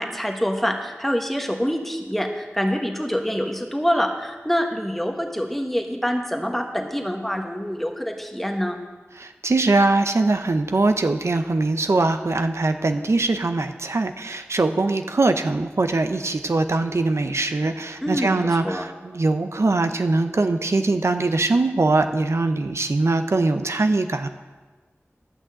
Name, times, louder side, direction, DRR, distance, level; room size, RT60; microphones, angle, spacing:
voice 1, 0.0-8.8 18.0-18.8, equal, 5° left, 3 dB, 1.3 m, -26 dB
voice 2, 9.2-24.3, right 3 dB, 75° right, 8 dB, 0.6 m, -22 dB
12.0 x 6.3 x 7.5 m, 1.3 s
wide cardioid pair, 60°, 5 cm